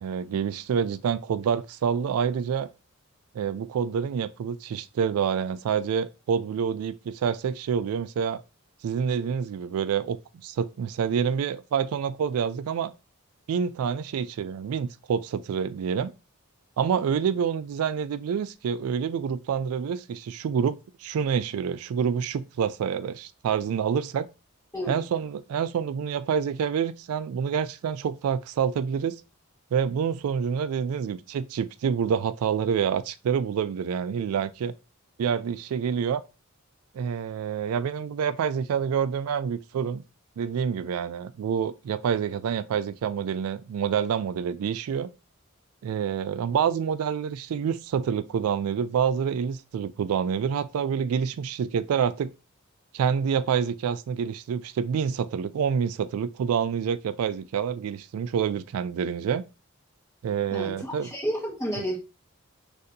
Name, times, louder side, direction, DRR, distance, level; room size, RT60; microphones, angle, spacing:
voice 1, 0.0-2.7 3.3-8.4 8.8-12.9 13.5-16.1 16.8-24.3 24.9-29.2 29.7-34.7 35.2-36.2 36.9-40.0 40.4-45.1 45.8-52.3 52.9-59.4 60.2-61.1 61.8-61.9, right 7 dB, 80° right, 0.3 m, -27 dB
voice 2, 60.5-62.0, equal, 15° left, 1.4 m, -31 dB
6.4 x 2.7 x 2.6 m
head